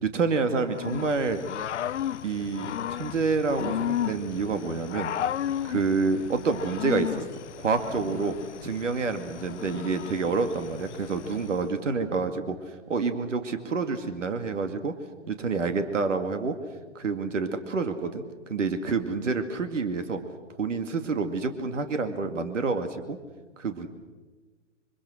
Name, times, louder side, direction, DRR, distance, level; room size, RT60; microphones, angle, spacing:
voice 1, 0.0-1.4 2.2-5.1 5.6-7.1 7.6-8.4 8.6-12.6 12.9-14.9 15.3-16.6 16.9-18.2 18.5-20.2 20.6-23.2 23.6-23.9, right 4 dB, 75° right, 8 dB, 2.3 m, -28 dB
Growling / Cricket, 0.7-11.6, left 10 dB, 70° left, 0.8 m, -34 dB
26.0 x 24.5 x 6.4 m, 1.4 s
hypercardioid pair, 125°, 37 cm